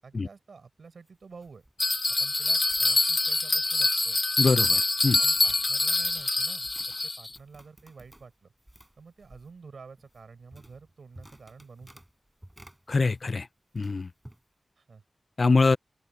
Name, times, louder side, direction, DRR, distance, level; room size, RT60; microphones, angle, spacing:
voice 1, 0.0-1.6 2.2-4.2 5.2-8.5 9.0-12.0 14.8-15.0, right 5 dB, 80° right, 7.1 m, -49 dB
sound 1, 0.8-13.5 13.7-14.4, right 1 dB, 10° right, 8.0 m, -55 dB
Bell, 1.8-7.4, left 2 dB, 35° left, 1.0 m, -25 dB
voice 2, 4.4-5.2 12.9-13.5 13.7-14.1 15.4-15.8, left 3 dB, 50° left, 0.5 m, -24 dB
open air
wide cardioid pair, 100°, 0 cm